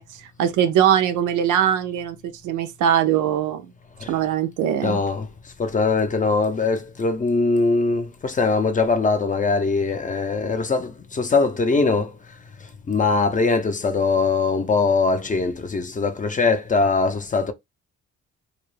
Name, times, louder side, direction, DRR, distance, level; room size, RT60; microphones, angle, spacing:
voice 1, 0.0-3.7 4.1-5.0, right 9 dB, 80° right, 0.5 m, -21 dB
voice 2, 4.8-5.3 5.6-12.1 12.9-17.5, left 4 dB, 25° left, 0.5 m, -21 dB
2.3 x 2.0 x 3.1 m
cardioid pair, 90°, 30 cm